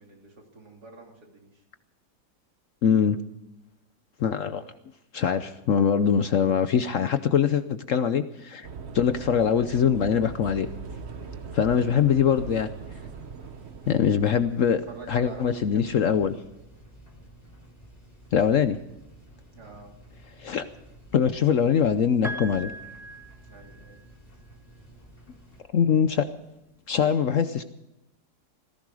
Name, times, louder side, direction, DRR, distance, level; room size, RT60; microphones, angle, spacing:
voice 1, 0.0-1.6 11.5-11.8 14.3-16.2 19.5-19.9 20.5-20.6 23.4-24.0 27.1-27.3, right 3 dB, 65° right, 1 dB, 3.6 m, -46 dB
voice 2, 2.8-3.2 4.2-4.6 5.1-8.7 8.9-10.7 11.5-12.7 13.9-14.8 15.1-16.3 18.3-18.8 20.4-20.7 21.1-22.7 25.7-26.3 26.9-27.6, left 7 dB, 60° left, 11 dB, 0.9 m, -23 dB
sound 1, 8.6-14.6, right 5 dB, 45° right, 1.0 m, -40 dB
sound 2, 10.3-25.6, right 1 dB, 20° left, 3.9 m, -51 dB
Piano, 22.2-24.2 25.5-25.6, right 1 dB, ahead, 1.3 m, -39 dB
18.0 x 16.0 x 4.8 m, 0.92 s
omnidirectional pair, 1.8 m